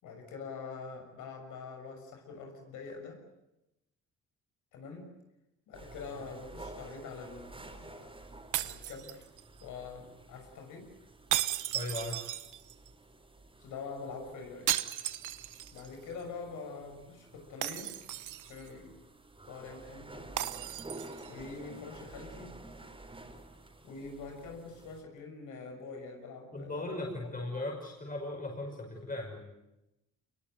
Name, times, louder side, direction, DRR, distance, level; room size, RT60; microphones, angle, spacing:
voice 1, 0.0-3.2 4.7-5.1 5.7-8.1 8.6-9.2 9.6-10.9 13.6-14.8 15.7-18.0 18.4-19.0 19.5-20.3 21.3-22.6 23.8-27.0, left 4 dB, 90° left, 4 dB, 6.7 m, -45 dB
washing machine, 5.7-25.0, right 2 dB, 20° right, 4.4 m, -51 dB
Glass Bottle Breaking, 8.5-9.6 11.3-12.9 14.7-15.9 16.2-16.3 17.6-18.7 20.4-21.3, right 13 dB, 80° right, 1.2 m, -35 dB
voice 2, 11.7-12.2 26.5-29.4, left 2 dB, 30° left, 1 dB, 5.9 m, -37 dB
25.0 x 22.0 x 9.4 m, 0.92 s
cardioid pair, 90°, 30 cm